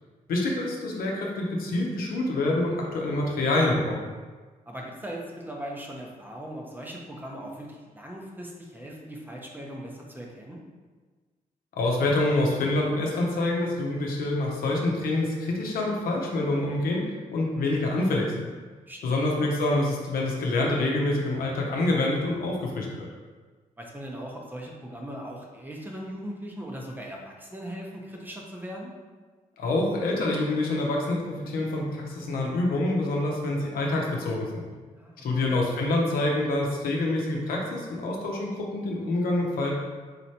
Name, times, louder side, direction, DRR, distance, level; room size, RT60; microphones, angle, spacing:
voice 1, 0.3-4.0 11.8-17.0 17.3-18.3 19.0-23.1 29.6-34.7 35.2-39.7, left 2 dB, 85° left, -1 dB, 0.7 m, -26 dB
voice 2, 4.7-10.6 18.9-19.2 23.8-29.0 35.0-35.4, equal, 15° right, -1 dB, 0.7 m, -39 dB
4.1 x 3.2 x 2.8 m, 1.4 s
cardioid pair, 80°, 15 cm